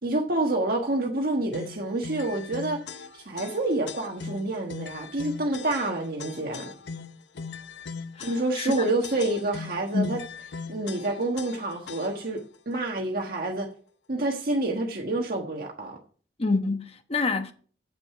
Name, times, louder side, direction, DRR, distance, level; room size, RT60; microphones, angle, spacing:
voice 1, 0.0-2.8 3.2-6.7 8.2-10.2 10.7-12.4 12.7-13.7 14.1-16.0, right 2 dB, 55° right, 1.4 m, -28 dB
sound 1, 1.5-12.4, left 5 dB, 90° left, 0.6 m, -40 dB
voice 2, 8.2-8.7 9.9-10.2 16.4-17.5, left 3 dB, 35° left, 1.1 m, -27 dB
8.9 x 7.7 x 5.6 m
head